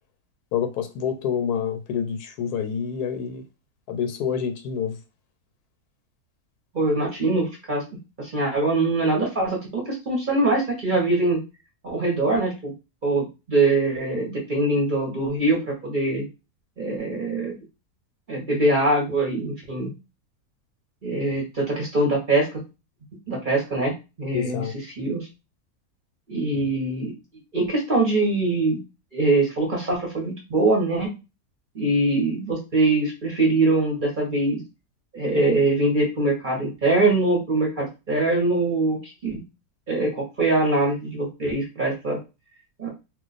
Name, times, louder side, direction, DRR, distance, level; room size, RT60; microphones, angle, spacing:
voice 1, 0.5-3.4 3.9-5.0 24.3-24.7, left 7 dB, 85° left, 1.1 m, -27 dB
voice 2, 6.7-7.8 8.2-11.4 11.8-12.7 13.0-16.3 16.8-17.6 18.3-19.9 21.0-22.6 23.3-23.9 24.2-24.6 25.0-25.3 26.3-27.1 27.5-28.8 29.1-31.1 31.7-34.6 35.1-39.4 39.9-42.2 42.8-42.9, right 2 dB, 40° right, 0.8 m, -23 dB
2.4 x 2.2 x 3.9 m
omnidirectional pair, 1.6 m